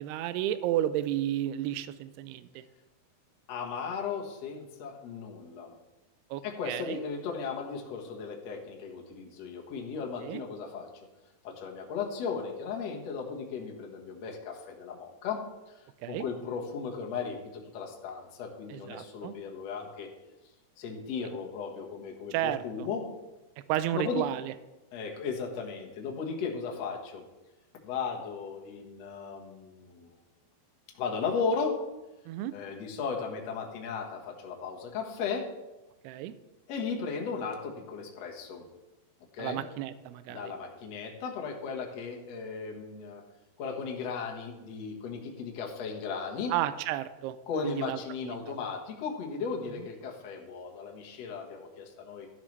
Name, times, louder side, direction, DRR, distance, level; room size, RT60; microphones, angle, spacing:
voice 1, 0.0-2.6 6.3-7.0 10.2-10.4 16.0-16.2 18.7-19.3 22.3-22.6 23.7-24.5 32.3-32.5 36.0-36.3 39.4-40.5 46.5-47.4 47.6-48.4, right 13 dB, 85° right, 13 dB, 2.6 m, -32 dB
voice 2, 3.5-5.7 6.4-10.9 11.4-20.1 20.8-23.1 23.9-24.3 24.9-27.2 27.8-30.1 30.9-31.8 32.5-35.5 36.7-38.6 39.3-39.6 40.3-43.2 43.6-46.5 47.5-52.3, left 5 dB, 55° left, 0 dB, 2.1 m, -36 dB
13.0 x 11.5 x 3.3 m, 1.0 s
omnidirectional pair, 4.7 m